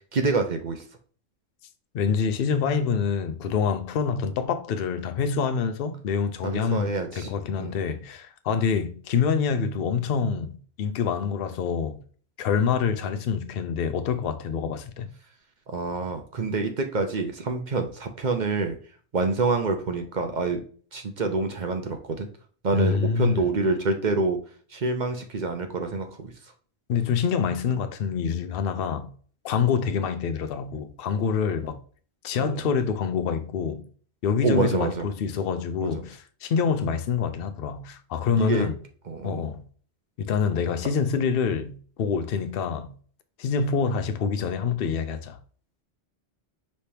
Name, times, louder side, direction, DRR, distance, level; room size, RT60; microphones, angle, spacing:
voice 1, 0.1-0.8 6.4-7.3 7.6-7.7 15.7-18.8 19.1-20.6 20.9-22.3 22.6-24.4 24.7-26.3 32.4-32.6 34.4-35.1 35.8-36.0 38.4-38.7 39.1-39.4, right 3 dB, 45° right, 0.8 m, -26 dB
voice 2, 1.9-12.0 12.4-15.1 22.7-23.4 26.9-29.1 29.4-31.8 32.2-33.9 34.2-38.8 39.2-39.6 40.2-43.0 43.4-45.4, left 6 dB, 65° left, 0.8 m, -26 dB
5.3 x 3.4 x 2.8 m
omnidirectional pair, 1.1 m